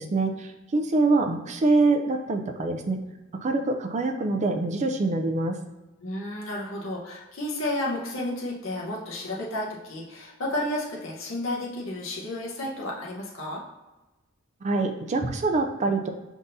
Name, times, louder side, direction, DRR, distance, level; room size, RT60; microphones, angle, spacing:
voice 1, 0.0-3.0 3.4-5.6 14.6-16.1, right 3 dB, 35° right, 6 dB, 0.4 m, -25 dB
voice 2, 6.0-13.6, left 1 dB, 70° left, -4 dB, 0.8 m, -32 dB
5.4 x 3.5 x 2.6 m, 1.1 s
head